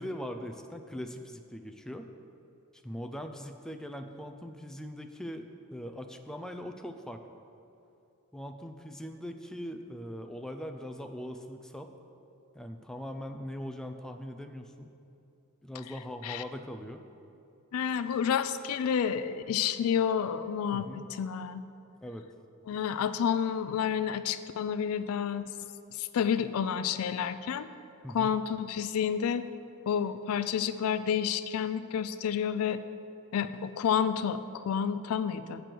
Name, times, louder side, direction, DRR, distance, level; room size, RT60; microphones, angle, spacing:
voice 1, 0.0-2.1 2.8-7.2 8.3-11.9 12.5-14.9 15.6-17.0 20.7-21.0 22.0-22.3 28.0-28.3, equal, 5° left, 5 dB, 0.3 m, -41 dB
voice 2, 17.7-21.6 22.7-25.5 25.9-27.7 28.1-29.5 29.9-32.8 33.3-35.6, left 8 dB, 85° left, 13 dB, 0.3 m, -30 dB
7.6 x 6.7 x 4.5 m, 2.7 s
head